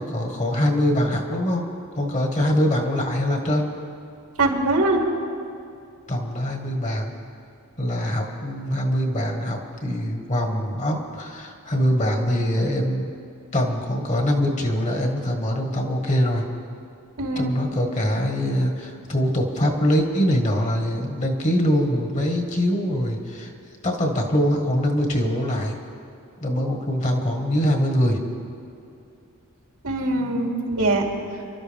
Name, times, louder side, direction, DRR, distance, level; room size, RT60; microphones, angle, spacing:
voice 1, 0.0-3.7 6.1-7.1 7.8-13.1 13.5-16.5 17.4-23.5 23.8-25.7 26.4-28.2, equal, 35° left, 2 dB, 1.7 m, -23 dB
voice 2, 4.4-5.0 17.2-17.6 29.8-31.0, right 2 dB, 80° right, -1 dB, 2.7 m, -22 dB
27.5 x 12.0 x 3.6 m, 2.6 s
head